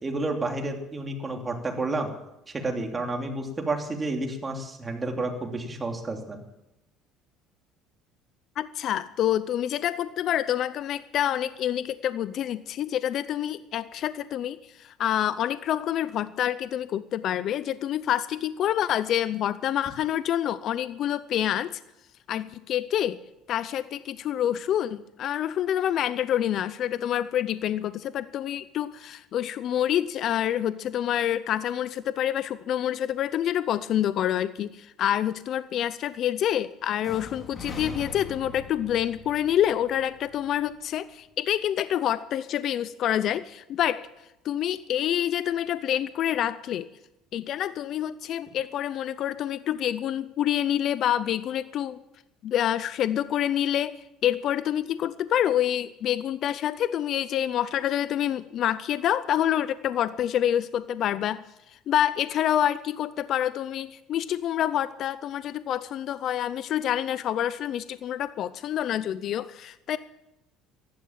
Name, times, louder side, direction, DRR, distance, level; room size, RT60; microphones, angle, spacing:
voice 1, 0.0-2.1 2.5-6.4, right 2 dB, 20° right, 3 dB, 3.0 m, -30 dB
voice 2, 8.6-21.8 22.3-23.2 23.5-44.0 44.4-46.9 47.3-52.0 52.4-70.0, left 11 dB, 55° left, 15 dB, 0.6 m, -27 dB
sound 1, 37.0-40.9, left 3 dB, 30° left, 2.4 m, -42 dB
15.0 x 11.5 x 7.5 m, 0.89 s
cardioid pair, 115°, 0 cm